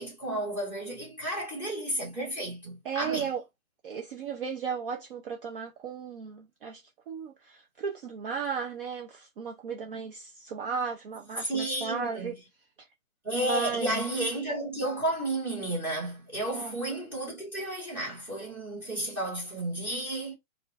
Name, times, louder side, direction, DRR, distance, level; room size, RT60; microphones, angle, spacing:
voice 1, 0.0-3.3 11.4-12.3 13.2-20.3, right 1 dB, 5° right, 1.5 m, -32 dB
voice 2, 2.8-3.4 3.8-6.8 7.1-12.3 13.3-14.0 16.5-16.7, right 6 dB, 40° right, 0.6 m, -35 dB
4.5 x 2.6 x 3.5 m
hypercardioid pair, 160°, 42 cm